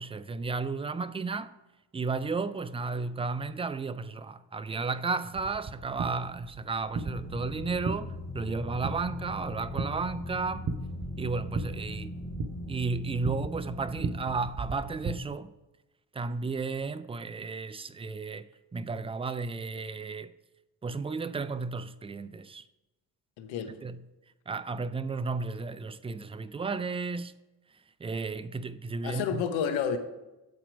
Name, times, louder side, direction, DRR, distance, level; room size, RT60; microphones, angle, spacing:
voice 1, 0.0-1.5 1.9-10.7 11.2-12.1 12.7-15.5 16.1-20.3 20.8-22.6 23.8-24.0 24.5-27.3 28.0-29.4, right 4 dB, 15° right, 0.3 m, -33 dB
sound 1, 5.3-15.1, right 4 dB, 35° right, 0.8 m, -38 dB
sound 2, 7.0-14.4, left 1 dB, 45° left, 2.4 m, -39 dB
voice 2, 23.4-23.8 29.0-30.0, left 7 dB, 80° left, 0.8 m, -30 dB
8.2 x 4.3 x 5.1 m
hypercardioid pair, 40°, 45 cm